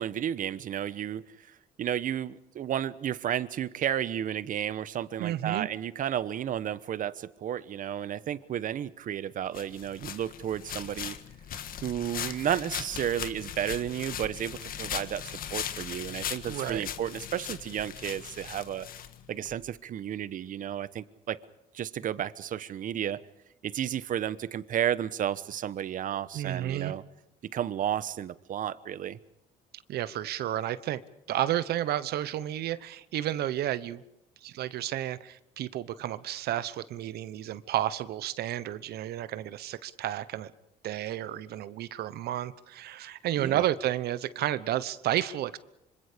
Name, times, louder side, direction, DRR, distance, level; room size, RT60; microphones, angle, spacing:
voice 1, 0.0-11.2 11.8-18.9 19.3-21.4 21.7-23.2 23.6-27.0 27.4-29.2 43.4-43.6, right 10 dB, 50° right, 16 dB, 1.1 m, -32 dB
voice 2, 5.2-5.7 16.4-16.9 26.3-26.9 29.7-31.0 31.3-34.0 34.4-40.5 40.8-45.6, right 12 dB, 70° right, 15 dB, 1.0 m, -31 dB
sound 1, 9.5-19.5, left 9 dB, 60° left, 1.6 m, -39 dB
26.0 x 25.5 x 5.2 m, 0.86 s
cardioid pair, 110°, 17 cm